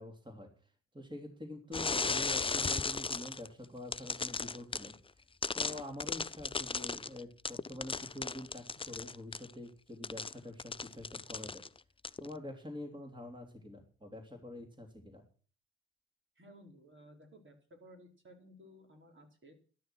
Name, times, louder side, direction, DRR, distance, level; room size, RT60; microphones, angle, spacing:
voice 1, 0.0-5.0 5.5-11.6 12.2-15.2, left 1 dB, 15° right, 3 dB, 3.5 m, -46 dB
sound 1, 1.7-3.5 3.9-4.9 5.4-9.5 10.0-11.8 12.0-12.3, left 4 dB, 20° left, 0.5 m, -36 dB
voice 2, 16.4-19.6, equal, 40° right, 2 dB, 4.6 m, -57 dB
12.5 x 12.0 x 6.2 m, 0.42 s
hypercardioid pair, 40°, 30 cm